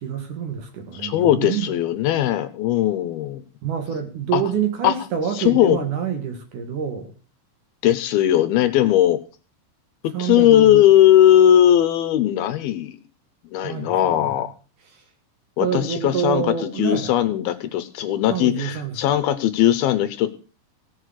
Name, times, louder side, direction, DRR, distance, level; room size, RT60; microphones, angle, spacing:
voice 1, 0.0-1.7 3.6-7.2 10.1-10.9 13.6-14.4 15.6-17.1 18.3-19.0, right 7 dB, 60° right, 6 dB, 2.7 m, -27 dB
voice 2, 0.9-3.4 4.3-4.4 4.8-4.9 5.3-5.8 7.8-9.2 10.0-13.0 13.5-14.5 15.6-20.3, left 12 dB, 75° left, 12 dB, 2.6 m, -18 dB
16.5 x 6.5 x 6.4 m, 0.36 s
omnidirectional pair, 4.7 m